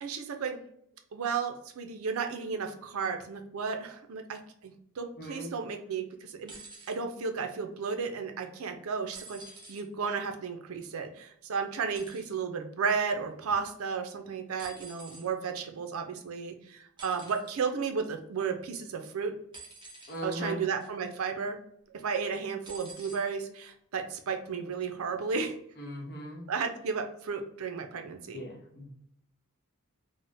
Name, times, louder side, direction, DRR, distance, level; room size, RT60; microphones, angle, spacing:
voice 1, 0.0-0.6 1.1-6.5 6.9-9.4 9.7-19.3 20.2-21.6 22.0-25.5 26.5-28.4, right 5 dB, 70° right, 6 dB, 0.5 m, -33 dB
voice 2, 5.2-5.5 20.1-20.6 25.8-26.5 28.3-28.9, equal, 50° left, 0 dB, 0.8 m, -39 dB
sound 1, 6.5-7.0 9.1-9.8 11.9-12.3 14.6-15.3 17.0-17.5 19.5-20.2 20.8-21.1 22.6-23.2 24.2-24.3, right 3 dB, 20° right, 0.7 m, -48 dB
3.5 x 2.1 x 2.6 m, 0.69 s
head